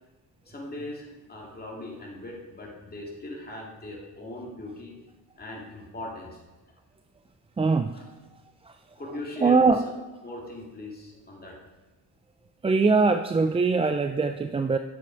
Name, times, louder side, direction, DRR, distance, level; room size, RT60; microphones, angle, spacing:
voice 1, 0.5-5.0 5.4-6.4 7.9-8.0 9.0-9.7 10.2-11.6, left 1 dB, 20° left, -2 dB, 2.4 m, -39 dB
voice 2, 7.6-7.9 8.6-8.7 9.4-9.8 12.6-14.8, right 4 dB, 15° right, 7 dB, 0.3 m, -22 dB
9.5 x 7.6 x 4.6 m, 1.2 s
cardioid pair, 85°, 42 cm